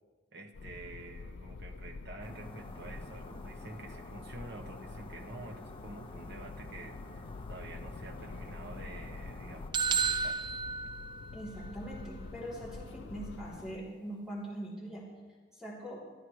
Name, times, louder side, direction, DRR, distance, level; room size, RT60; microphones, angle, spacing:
voice 1, 0.3-10.4, right 2 dB, 60° right, 3 dB, 1.2 m, -48 dB
sound 1, 0.5-13.8, left 3 dB, 65° left, 0.4 m, -47 dB
sound 2, 2.2-9.7, left 1 dB, 25° left, 1.3 m, -49 dB
sound 3, 9.7-11.7, right 5 dB, 25° right, 0.5 m, -32 dB
voice 2, 11.3-15.0 15.5-16.0, right 1 dB, 5° right, -6 dB, 3.2 m, -42 dB
22.0 x 12.5 x 3.2 m, 1.5 s
head